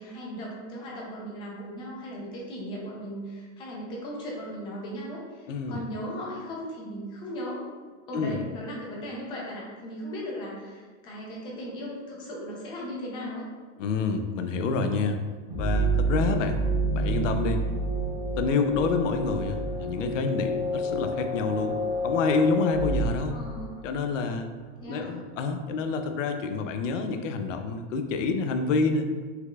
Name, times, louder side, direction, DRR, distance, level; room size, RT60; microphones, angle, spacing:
voice 1, 0.0-7.7 8.1-13.4 23.3-23.8 24.8-25.2, equal, 15° left, -3 dB, 0.5 m, -37 dB
voice 2, 5.5-5.8 8.1-8.4 13.8-15.2 15.5-16.6 16.9-17.6 18.4-21.8 22.0-23.4 23.8-24.5 24.9-29.1, left 4 dB, 90° left, 6 dB, 0.6 m, -28 dB
sound 1, 15.5-24.1, right 1 dB, 10° right, 0.9 m, -28 dB
5.6 x 3.9 x 2.3 m, 1.5 s
supercardioid pair, 175°, 36 cm